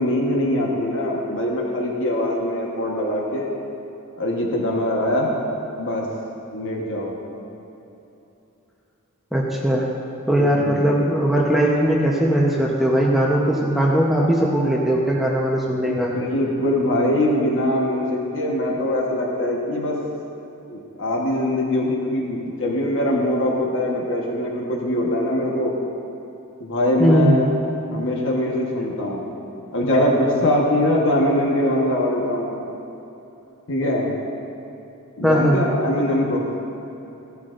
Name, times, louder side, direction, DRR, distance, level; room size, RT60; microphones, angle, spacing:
voice 1, 0.0-3.5 4.2-5.3 5.8-6.1 6.5-7.1 10.3-10.9 15.9-20.0 20.7-25.7 26.6-27.5 27.9-29.3 29.7-32.6 33.7-34.1 35.2-36.4, left 1 dB, 60° left, -1 dB, 1.3 m, -22 dB
voice 2, 9.3-9.9 10.3-16.1 27.0-27.4 35.2-35.6, right 1 dB, ahead, -4 dB, 0.8 m, -19 dB
16.0 x 11.5 x 2.5 m, 3.0 s
head